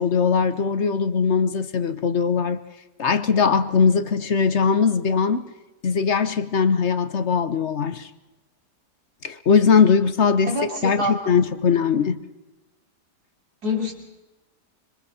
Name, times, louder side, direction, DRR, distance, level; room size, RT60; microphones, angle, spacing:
voice 1, 0.0-2.6 3.0-5.5 5.8-8.1 9.2-12.2, left 6 dB, 45° left, 1.1 m, -20 dB
voice 2, 10.4-11.1 13.6-13.9, left 2 dB, 60° right, 3.9 m, -25 dB
26.5 x 26.0 x 4.2 m
omnidirectional pair, 1.8 m